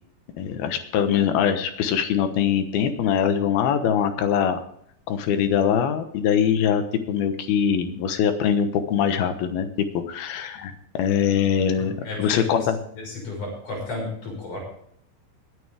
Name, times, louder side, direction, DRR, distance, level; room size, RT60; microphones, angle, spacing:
voice 1, 0.4-4.6 5.1-11.9 12.2-12.8, left 8 dB, 70° left, 8 dB, 2.8 m, -23 dB
voice 2, 11.8-12.7 12.9-14.6, left 3 dB, 45° left, -1 dB, 7.6 m, -33 dB
22.0 x 9.7 x 3.5 m, 0.66 s
omnidirectional pair, 4.9 m